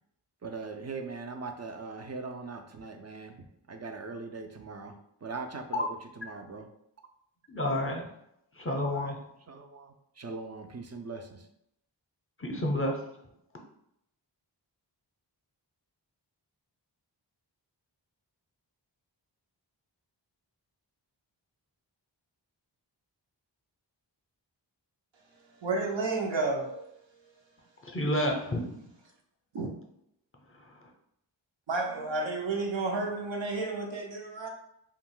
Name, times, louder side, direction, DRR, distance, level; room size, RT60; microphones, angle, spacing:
voice 1, 0.4-6.7 8.7-11.5, right 4 dB, 40° right, 0.4 m, -41 dB
voice 2, 7.5-8.1 8.6-9.2 12.4-13.0 27.8-28.6, left 1 dB, 30° left, 0.6 m, -29 dB
voice 3, 25.6-26.8 29.5-29.7 31.7-34.5, right 3 dB, 80° right, 0.7 m, -31 dB
2.5 x 2.2 x 3.7 m
wide cardioid pair, 50°, 45 cm